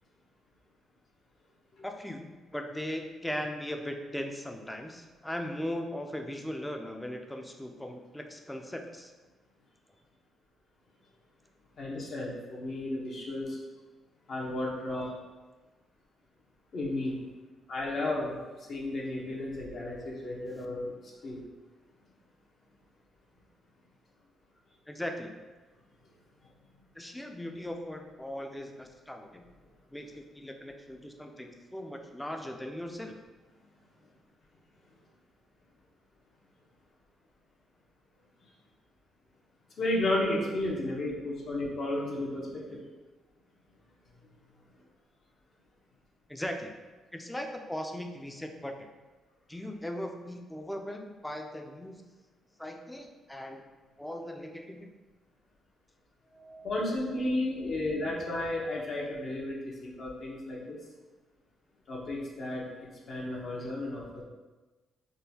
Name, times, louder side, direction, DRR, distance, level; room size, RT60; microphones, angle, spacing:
voice 1, 1.8-9.1 24.9-25.4 27.0-29.5 29.9-33.2 46.3-46.7 47.1-48.9 49.5-52.0 52.6-53.6 54.0-54.9, left 1 dB, 5° left, 4 dB, 0.4 m, -38 dB
voice 2, 11.8-13.6 14.3-15.2 16.7-17.2 17.7-21.4 39.8-42.8 56.3-60.8 61.9-64.2, left 1 dB, 55° left, -3 dB, 0.7 m, -33 dB
3.6 x 2.2 x 2.8 m, 1.2 s
cardioid pair, 90°, 0 cm